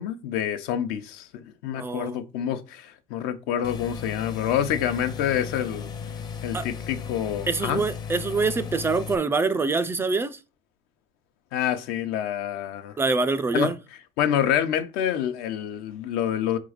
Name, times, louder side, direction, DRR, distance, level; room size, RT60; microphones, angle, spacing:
voice 1, 0.0-5.9 6.4-7.8 11.5-13.0 13.5-13.7 14.2-16.6, left 10 dB, 80° left, 0.9 m, -27 dB
voice 2, 1.8-2.2 6.5-6.7 7.5-10.4 13.0-13.8, right 3 dB, 15° right, 0.3 m, -25 dB
sound 1, 3.6-9.1, left 6 dB, 25° left, 0.6 m, -36 dB
4.9 x 3.8 x 5.1 m
cardioid pair, 160°, 15 cm